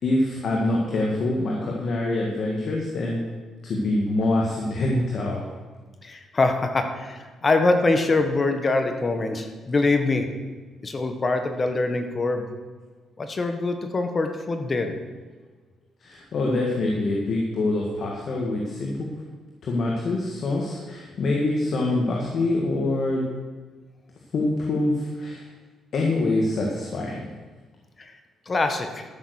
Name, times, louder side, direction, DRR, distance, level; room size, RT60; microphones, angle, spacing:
voice 1, 0.0-3.2 3.6-5.4 16.0-19.1 19.6-23.3 24.3-25.5 25.9-27.2, left 2 dB, 60° left, -1 dB, 1.9 m, -25 dB
voice 2, 6.0-10.3 10.8-12.4 13.2-15.0 28.0-28.1 28.5-29.0, left 3 dB, 35° left, 6 dB, 1.5 m, -24 dB
13.0 x 6.7 x 6.5 m, 1.4 s
cardioid pair, 90°, 0 cm